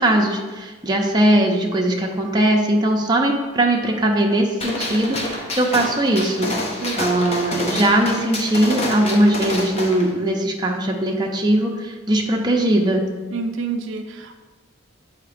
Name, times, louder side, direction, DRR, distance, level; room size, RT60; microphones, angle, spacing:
voice 1, 0.0-6.5 7.0-13.1, right 1 dB, 20° right, 0 dB, 0.6 m, -20 dB
Gunshot gunfire, 4.6-10.1, left 1 dB, 30° left, 0.8 m, -28 dB
voice 2, 13.3-14.3, right 4 dB, 65° right, 6 dB, 0.4 m, -28 dB
7.8 x 2.8 x 5.0 m, 1.3 s
head